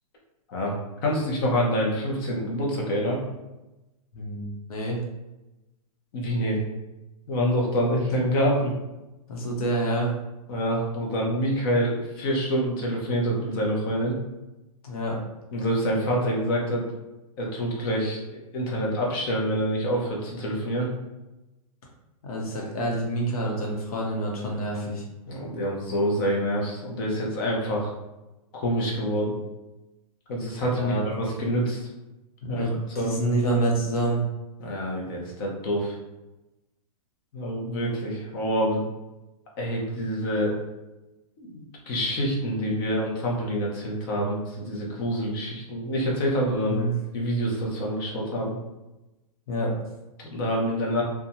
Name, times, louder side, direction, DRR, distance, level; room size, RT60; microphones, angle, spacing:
voice 1, 1.0-3.2 6.1-6.6 7.3-8.7 10.5-14.2 15.5-16.8 17.4-20.9 25.3-27.9 28.5-29.3 30.3-31.8 32.5-32.7 33.0-33.2 34.6-36.0 37.3-38.8 39.6-40.6 41.4-46.8 47.1-48.6 50.3-51.0, equal, 35° left, -2 dB, 0.7 m, -26 dB
voice 2, 4.1-5.0 9.3-10.1 14.8-15.2 22.2-25.0 30.8-31.0 32.4-34.2 46.6-46.9 49.5-49.7, right 1 dB, 70° left, -1 dB, 0.9 m, -27 dB
2.7 x 2.3 x 2.7 m, 1.0 s
hypercardioid pair, 155°, 19 cm